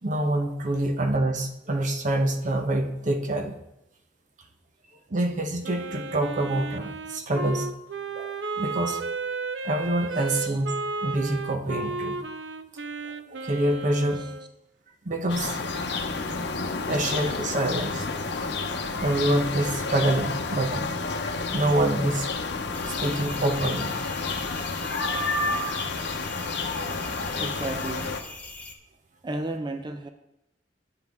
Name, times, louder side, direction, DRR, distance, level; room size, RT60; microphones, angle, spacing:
voice 1, 0.0-3.5 5.1-7.7 8.1-8.3 8.6-9.0 9.6-10.7 11.0-12.2 13.0-14.2 15.0-16.0 16.9-18.0 19.0-20.9 21.5-22.3 22.9-23.9, right 1 dB, 45° right, 5 dB, 0.9 m, -26 dB
Wind instrument woodwind instrument, 5.6-14.5, right 3 dB, 80° right, 0.5 m, -33 dB
sound 1, 15.3-28.2, left 3 dB, 70° left, 0.8 m, -30 dB
sound 2, 22.7-28.7, left 2 dB, 10° left, 0.8 m, -41 dB
voice 2, 25.1-25.5 27.3-28.1 29.2-30.1, right 2 dB, 25° right, 7 dB, 0.4 m, -34 dB
9.7 x 7.4 x 3.6 m, 0.87 s
head